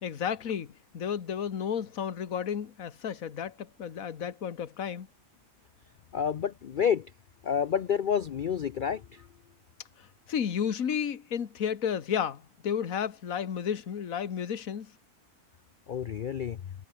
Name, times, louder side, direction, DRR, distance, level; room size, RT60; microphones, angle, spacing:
voice 1, 0.0-5.1 10.3-14.9, left 8 dB, 65° left, 1.8 m, -32 dB
voice 2, 6.1-7.1 7.4-9.3 15.9-16.6, left 8 dB, 80° left, 0.4 m, -29 dB
omnidirectional pair, 1.6 m